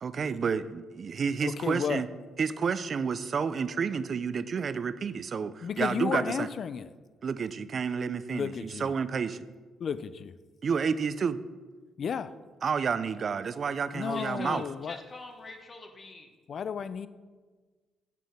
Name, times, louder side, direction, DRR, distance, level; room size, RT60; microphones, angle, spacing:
voice 1, 0.0-2.1 2.4-6.5 7.2-9.5 10.6-11.4 12.6-14.7, right 6 dB, 50° right, 15 dB, 0.3 m, -30 dB
voice 2, 1.4-2.0 5.6-6.9 8.3-8.9 9.8-10.3 12.0-12.3 13.9-15.0 16.5-17.1, left 7 dB, 55° left, 14 dB, 0.3 m, -33 dB
voice 3, 14.1-16.2, left 3 dB, 35° left, 4 dB, 1.1 m, -44 dB
7.3 x 5.8 x 3.5 m, 1.4 s
supercardioid pair, 75°, 0 cm